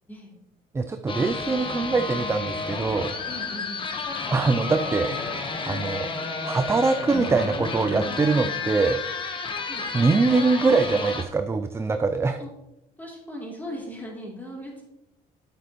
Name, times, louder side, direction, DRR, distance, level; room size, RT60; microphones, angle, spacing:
voice 1, 0.7-3.1 4.3-6.1 6.4-9.0 9.9-12.4, right 4 dB, 15° right, 8 dB, 0.4 m, -23 dB
sound 1, 1.1-11.2, left 4 dB, 30° left, 1.1 m, -31 dB
voice 2, 3.2-4.4 9.7-9.9 12.4-12.5 13.0-14.8, left 1 dB, 10° left, -3 dB, 3.1 m, -39 dB
sound 2, 3.9-4.3 4.6-10.7, left 10 dB, 90° left, 0.5 m, -40 dB
8.4 x 8.2 x 3.0 m, 0.88 s
cardioid pair, 110°, 17 cm